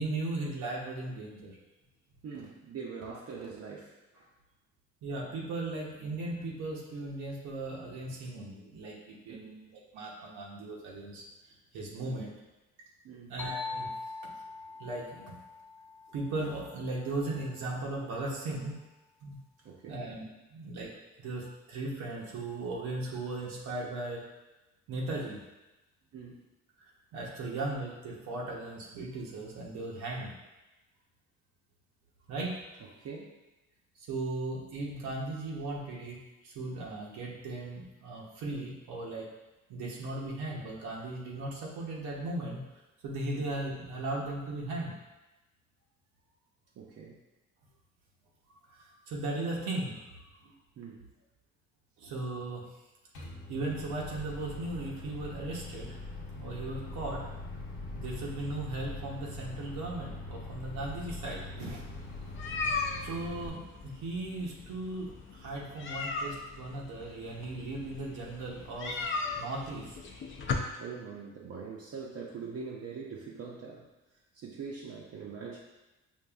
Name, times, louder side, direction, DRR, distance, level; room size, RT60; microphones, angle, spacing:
voice 1, 0.0-1.6 5.0-11.3 11.7-12.3 13.3-13.9 14.2-14.3 14.8-15.4 16.1-18.8 19.2-19.4 19.9-20.2 20.5-20.9 21.2-24.2 24.9-25.4 26.8-30.3 32.3-32.6 34.0-39.3 39.7-42.6 43.0-44.9 48.7-50.0 50.4-50.5 52.0-52.6 53.5-56.0 56.3-57.2 57.9-61.8 63.0-69.0 69.4-70.0, right 2 dB, 85° right, -3 dB, 0.8 m, -37 dB
voice 2, 2.2-4.3 9.3-9.5 12.0-12.3 13.0-13.3 19.6-20.1 26.1-26.5 33.0-33.3 43.3-43.5 46.8-47.2 50.8-51.1 61.6-61.8 70.7-73.9 74.3-75.6, right 5 dB, 55° right, -4 dB, 0.6 m, -43 dB
sound 1, 13.4-17.1, left 3 dB, 10° left, 1.1 m, -42 dB
Microwave oven, 53.1-63.5, left 2 dB, 90° left, 1.0 m, -42 dB
sound 2, 61.6-70.5, left 4 dB, 40° left, 0.5 m, -38 dB
5.3 x 2.5 x 2.3 m, 1.0 s
cardioid pair, 90°, 30 cm